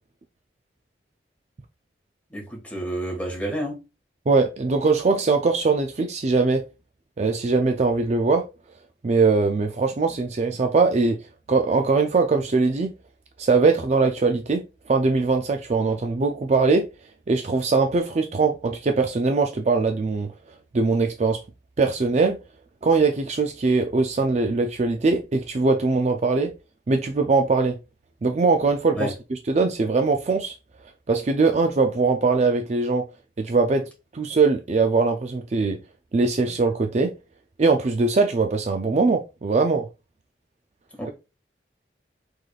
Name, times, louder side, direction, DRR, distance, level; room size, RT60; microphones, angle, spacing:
voice 1, 2.3-3.8 28.9-29.1 41.0-41.1, right 1 dB, 10° left, 1.7 m, -30 dB
voice 2, 4.3-6.6 7.2-8.5 9.0-11.2 11.5-12.9 13.4-16.8 17.3-20.3 20.7-21.4 21.8-22.4 22.8-26.5 26.9-27.8 28.2-30.6 31.1-33.0 33.4-33.8 34.1-35.8 36.1-37.1 37.6-39.9, right 4 dB, 40° right, 0.4 m, -21 dB
4.9 x 3.9 x 2.4 m
head